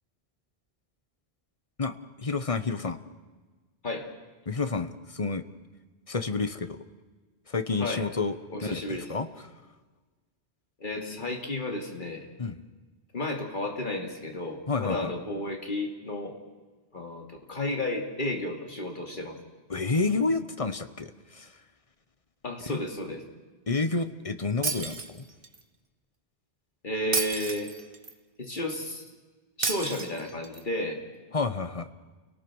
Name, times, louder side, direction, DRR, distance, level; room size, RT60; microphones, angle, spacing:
voice 1, 1.8-3.0 4.5-5.4 6.1-6.8 7.5-9.6 12.4-12.6 14.7-15.1 19.7-21.6 22.6-22.8 23.7-25.2 31.3-31.9, left 4 dB, 35° left, 10 dB, 1.1 m, -30 dB
voice 2, 8.5-9.1 10.8-12.3 13.1-16.3 16.9-19.4 22.4-23.2 26.8-27.7 28.4-29.1 29.6-31.0, left 1 dB, 50° left, 2 dB, 2.9 m, -32 dB
Shatter, 24.6-25.6 27.1-28.1 29.6-30.6, right 4 dB, 60° right, 1.5 m, -31 dB
29.5 x 18.5 x 6.3 m, 1.3 s
omnidirectional pair, 1.1 m